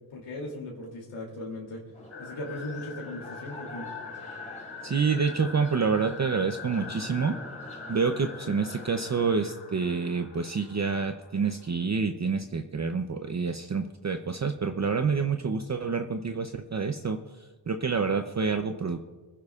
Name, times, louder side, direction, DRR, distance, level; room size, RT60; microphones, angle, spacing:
voice 1, 0.1-1.8 2.2-3.9, left 1 dB, 90° left, -2 dB, 2.9 m, -38 dB
sound 1, 1.9-9.3, left 2 dB, 15° left, 3.4 m, -46 dB
sound 2, 2.1-11.7, left 5 dB, 65° left, 1.7 m, -44 dB
voice 2, 4.8-7.4 7.9-19.0, right 5 dB, 35° right, 7 dB, 0.7 m, -28 dB
25.5 x 10.0 x 2.4 m, 1.3 s
cardioid pair, 70°, 48 cm